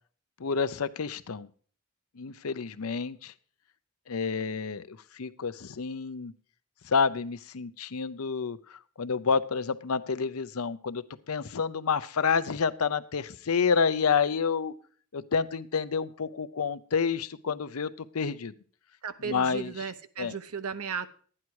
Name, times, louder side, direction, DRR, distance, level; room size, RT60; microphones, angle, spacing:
voice 1, 0.4-1.5 2.2-3.3 4.1-6.3 6.8-14.7 15.1-18.5 19.2-19.7 20.2-20.3, left 5 dB, 75° left, 0.6 m, -29 dB
voice 2, 19.0-21.1, right 6 dB, 80° right, 0.8 m, -35 dB
12.0 x 9.8 x 4.7 m
head